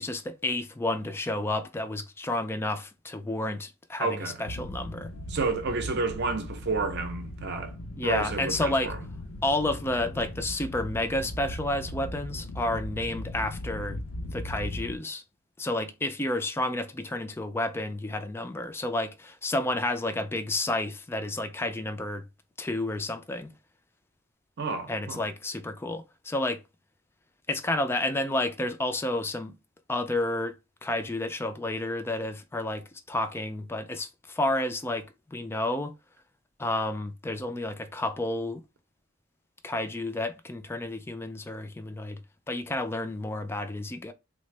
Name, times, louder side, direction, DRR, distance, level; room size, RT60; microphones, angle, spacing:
voice 1, 0.0-5.1 8.0-8.9 9.4-14.0 14.3-15.2 15.6-22.3 22.6-23.5 24.9-26.6 27.5-29.5 29.9-35.9 36.6-38.6 39.6-42.2 42.5-44.1, left 2 dB, 10° left, 0.3 m, -30 dB
voice 2, 4.0-4.4 5.3-7.7 8.0-9.0 24.6-25.2, right 4 dB, 55° right, 0.6 m, -30 dB
sound 1, 4.5-15.0, left 1 dB, 85° left, 0.5 m, -38 dB
3.4 x 2.1 x 3.2 m
head